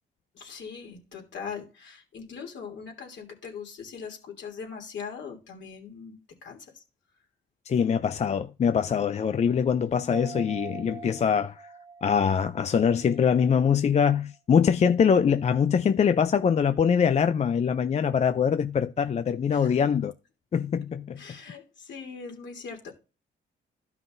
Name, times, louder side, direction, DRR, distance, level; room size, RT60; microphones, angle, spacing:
voice 1, 0.3-6.2 6.4-6.8 19.5-19.9 21.2-22.9, left 6 dB, 65° left, 2.9 m, -41 dB
voice 2, 7.7-11.6 12.0-20.1 20.5-21.2, left 7 dB, 35° left, 0.5 m, -23 dB
sound 1, 10.1-13.8 14.2-14.3, right 4 dB, 20° right, 1.0 m, -44 dB
13.0 x 5.7 x 2.6 m
cardioid pair, 90°, 20 cm